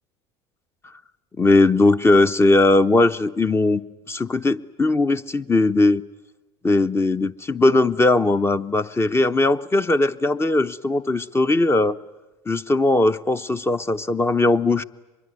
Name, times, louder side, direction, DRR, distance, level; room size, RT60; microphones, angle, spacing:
voice 1, 1.4-3.8 4.1-6.0 6.6-12.0 12.5-14.8, left 2 dB, 15° left, 13 dB, 0.8 m, -19 dB
24.0 x 22.0 x 9.4 m, 1.1 s
hypercardioid pair, 70°, 14 cm